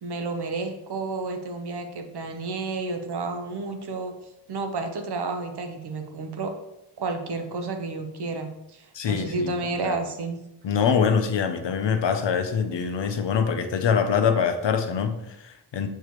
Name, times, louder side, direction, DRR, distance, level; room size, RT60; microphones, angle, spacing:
voice 1, 0.0-4.1 4.5-6.5 7.0-10.4, right 3 dB, 60° right, 6 dB, 0.8 m, -31 dB
voice 2, 8.9-9.5 9.8-10.0 10.6-15.9, left 6 dB, 70° left, 7 dB, 0.7 m, -24 dB
6.7 x 4.6 x 3.1 m, 0.89 s
wide cardioid pair, 155°, 45 cm